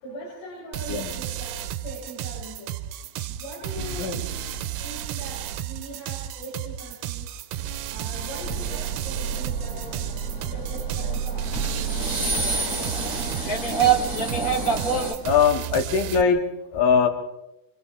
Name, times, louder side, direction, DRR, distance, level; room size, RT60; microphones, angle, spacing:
voice 1, 0.0-1.6 1.8-2.7 3.3-4.5 4.8-7.3 7.9-10.0 10.5-12.4 12.7-13.4, right 1 dB, 70° left, -4 dB, 10.0 m, -41 dB
sound 1, 0.7-16.2, right 11 dB, 80° right, 3.4 m, -33 dB
sound 2, 8.4-15.1, right 5 dB, 20° left, 2.9 m, -26 dB
voice 2, 15.2-17.1, left 6 dB, 55° left, 4 dB, 3.2 m, -21 dB
28.5 x 28.5 x 3.4 m, 0.90 s
omnidirectional pair, 5.8 m